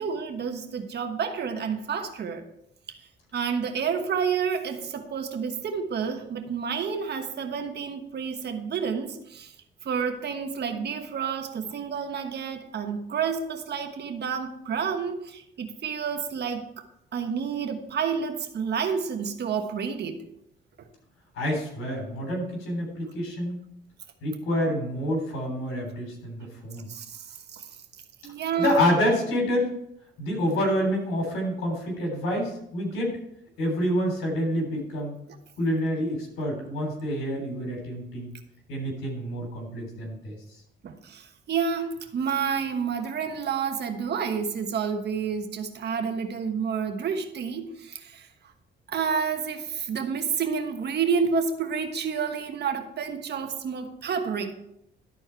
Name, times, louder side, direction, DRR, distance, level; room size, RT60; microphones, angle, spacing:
voice 1, 0.0-2.4 2.9-3.0 3.3-9.5 9.8-16.9 17.1-20.2 26.9-27.7 28.2-28.8 40.8-48.3 48.9-54.5, right 6 dB, 55° right, 1.2 m, -29 dB
voice 2, 21.4-23.6 24.2-26.9 28.6-29.7 30.2-33.2 33.6-35.1 35.6-38.3 38.7-40.4, equal, 85° left, 3.5 m, -27 dB
12.5 x 4.5 x 4.5 m
cardioid pair, 90°, 20 cm